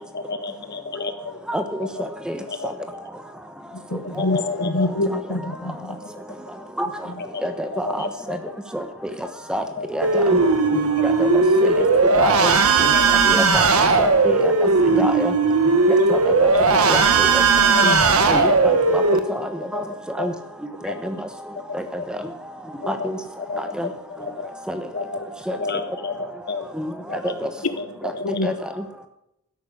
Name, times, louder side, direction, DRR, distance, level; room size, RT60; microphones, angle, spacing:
voice 1, 0.0-1.4 2.0-2.1 2.5-2.7 4.2-4.9 6.1-6.7 7.2-8.6 9.8-10.5 11.0-11.1 11.7-12.3 12.7-13.2 13.6-14.0 16.1-16.6 17.7-18.5 19.1-19.2 19.7-20.3 20.8-21.0 22.0-22.1 22.8-23.1 23.4-24.5 24.9-26.7 27.1-27.3 27.8-28.5, left 4 dB, 50° left, 8 dB, 1.5 m, -31 dB
voice 2, 3.7-6.0 14.9-15.0 28.2-28.5, left 2 dB, 85° left, 10 dB, 1.2 m, -26 dB
voice 3, 7.4-8.4 8.7-8.8 9.5-9.6 9.9-10.4 10.7-11.3 11.6-11.7 12.2-12.5 12.8-12.9 13.2-13.6 14.0-14.5 15.0-15.3 16.1-16.5 16.9-17.4 17.8-17.9 18.3-19.0 19.7-19.8 20.2-20.3 20.8-21.1 21.7-21.8 22.9-23.1 23.8-23.9 24.7-24.8 25.5-25.6 26.8-26.9 27.2-27.5 28.4-28.5, equal, 5° right, 7 dB, 1.1 m, -26 dB
sound 1, 10.0-19.2, right 4 dB, 85° right, 1.4 m, -17 dB
13.0 x 10.5 x 6.4 m, 0.80 s
head